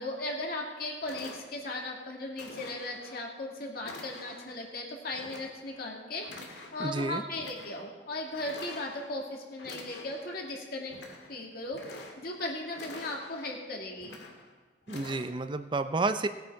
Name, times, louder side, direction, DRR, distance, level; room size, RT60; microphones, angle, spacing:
voice 1, 0.0-10.9 11.3-14.1, left 2 dB, 55° left, 0 dB, 2.2 m, -37 dB
sound 1, 0.6-0.7 1.0-1.9 2.4-3.2 3.8-4.5 5.1-5.9 6.2-7.0 7.3-7.9 8.3-9.2 9.6-10.4 10.8-11.3 11.7-12.4 12.7-13.6 14.0-14.5 14.9-15.3, left 2 dB, 70° left, 2.0 m, -47 dB
voice 2, 6.8-7.2 14.9-16.3, right 3 dB, 25° right, 10 dB, 0.5 m, -30 dB
18.0 x 8.9 x 4.7 m, 1.4 s
head